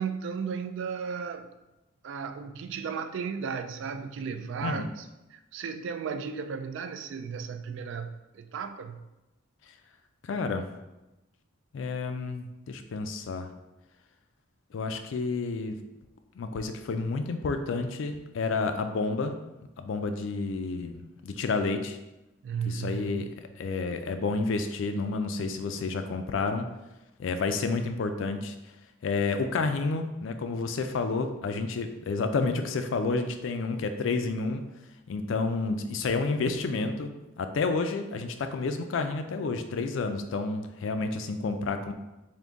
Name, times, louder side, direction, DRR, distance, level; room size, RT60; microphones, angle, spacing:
voice 1, 0.0-1.5 2.0-5.1 5.3-9.0 22.4-23.3, right 6 dB, 65° right, 0.3 m, -35 dB
voice 2, 10.2-10.7 11.7-13.5 14.7-15.7 16.4-19.3 19.8-22.0 22.7-23.3 23.6-26.7 27.2-28.5 29.0-34.6 35.1-41.9, left 3 dB, 65° left, 0.4 m, -30 dB
3.5 x 2.7 x 3.9 m
head